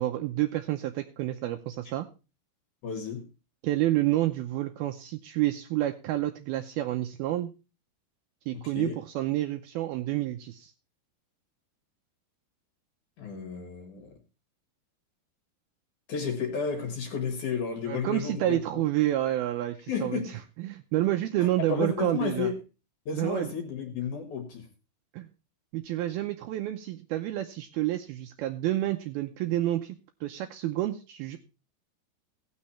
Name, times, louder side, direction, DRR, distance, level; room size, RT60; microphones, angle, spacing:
voice 1, 0.0-2.1 3.6-7.5 8.5-10.7 17.9-20.2 20.6-22.5 23.1-23.5 25.1-25.3 25.7-30.0 30.2-31.4, right 14 dB, 80° right, 6 dB, 2.3 m, -29 dB
voice 2, 2.8-3.3 8.5-9.0 13.2-14.2 16.1-18.8 19.9-20.4 21.4-22.6 23.1-24.7, left 6 dB, 55° left, 4 dB, 2.5 m, -32 dB
17.0 x 6.3 x 4.2 m, 0.31 s
omnidirectional pair, 5.0 m